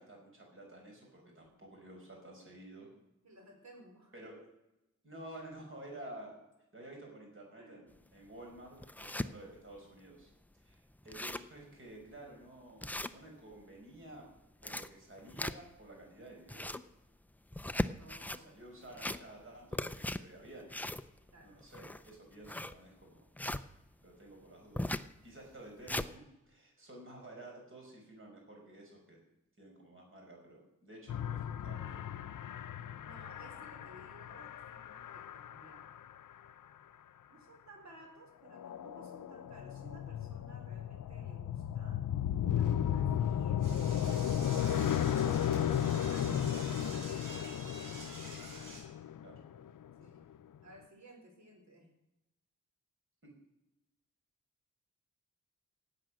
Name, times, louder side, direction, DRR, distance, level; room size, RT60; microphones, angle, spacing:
voice 1, 0.0-2.9 4.1-4.4 5.0-6.4 6.7-10.3 10.6-14.2 14.6-16.8 18.3-20.7 21.4-23.2 24.0-25.0 25.2-29.2 29.6-32.1 49.2-49.3 53.2-53.3, right 1 dB, 40° right, 0 dB, 5.2 m, -52 dB
voice 2, 1.2-1.7 3.2-4.1 7.5-7.8 9.2-9.5 18.0-18.5 21.3-21.6 33.0-35.9 37.3-42.0 42.5-44.2 44.8-47.9 50.0-50.2 50.6-51.9, right 1 dB, 60° right, 2 dB, 4.3 m, -57 dB
sound 1, 8.0-8.1 8.6-9.3 9.8-9.9 10.2-10.3 10.7-10.8 11.0-11.6 12.0-12.1 12.8-13.6 14.4-15.9 16.3-16.9 17.5-18.4 18.8-19.5 19.7-23.6 24.8-25.1 25.6-26.1, left 1 dB, 5° left, 0.4 m, -38 dB
sound 2, 31.1-36.0 38.5-50.0, left 10 dB, 85° left, 0.6 m, -35 dB
Door / Toilet flush, 43.6-48.8, right 1 dB, 85° right, 6.2 m, -48 dB
16.5 x 9.0 x 6.3 m, 0.92 s
wide cardioid pair, 165°, 31 cm